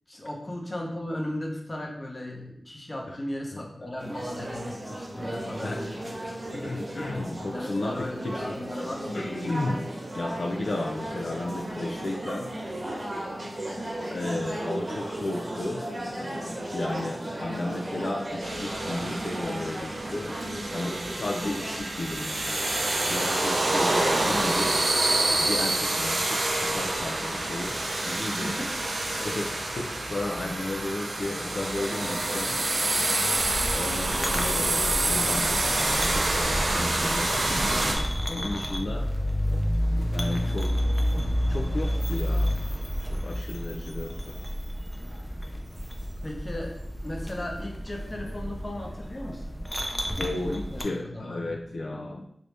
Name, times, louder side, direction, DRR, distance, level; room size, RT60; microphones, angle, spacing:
voice 1, 0.1-6.0 7.5-9.3 28.4-28.7 29.2-29.4 46.2-46.7 47.0-49.5 50.2-51.7, left 1 dB, 35° left, 0 dB, 0.8 m, -36 dB
voice 2, 3.5-3.9 5.6-5.8 6.5-8.6 9.1-9.9 10.1-12.5 14.0-15.9 16.7-20.3 20.7-22.7 22.9-24.7 25.4-27.8 28.0-28.5 29.2-32.6 33.7-39.1 40.1-40.7 41.5-42.6 43.1-44.3 50.2-52.2, left 2 dB, 75° left, 1 dB, 0.3 m, -33 dB
sound 1, 4.0-21.8, right 1 dB, 45° right, 0.9 m, -35 dB
sound 2, 18.4-37.9, right 2 dB, 85° right, 0.5 m, -27 dB
sound 3, 33.3-50.8, equal, 5° left, 0.4 m, -30 dB
3.1 x 2.6 x 3.3 m, 0.74 s
wide cardioid pair, 65°, 0 cm